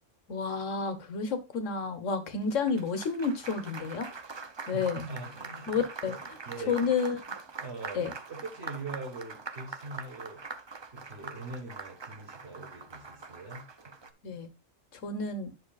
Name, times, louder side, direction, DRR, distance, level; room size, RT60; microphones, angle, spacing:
voice 1, 0.3-4.1 4.7-5.1 5.7-6.4 6.7-7.2 7.9-8.1 14.2-14.5 14.9-15.5, left 5 dB, 75° left, 1.5 m, -30 dB
Applause, 2.4-14.1, right 4 dB, 40° right, 0.4 m, -43 dB
voice 2, 4.7-5.8 6.1-6.2 6.4-6.9 7.5-10.4 10.9-13.9, right 3 dB, 55° right, 1.7 m, -42 dB
9.6 x 6.3 x 2.3 m
omnidirectional pair, 1.3 m